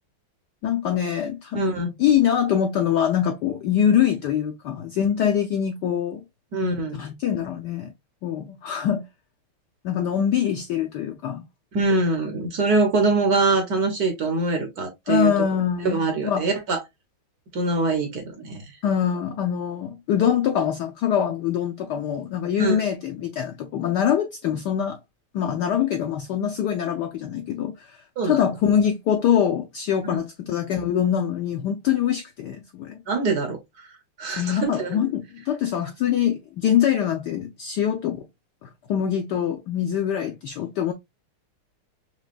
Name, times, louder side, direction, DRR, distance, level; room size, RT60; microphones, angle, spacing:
voice 1, 0.6-1.6 2.0-6.2 6.9-7.9 8.2-9.0 9.8-11.4 15.1-16.5 18.8-25.0 25.3-33.0 34.4-38.3 38.6-40.9, left 9 dB, 75° left, 0.9 m, -24 dB
voice 2, 1.5-1.9 6.5-7.0 11.7-15.3 15.8-16.8 17.5-18.6 22.6-22.8 28.2-28.4 30.0-30.2 33.1-33.6 34.2-35.0, right 3 dB, 55° right, 1.2 m, -23 dB
6.1 x 2.3 x 2.4 m
omnidirectional pair, 2.4 m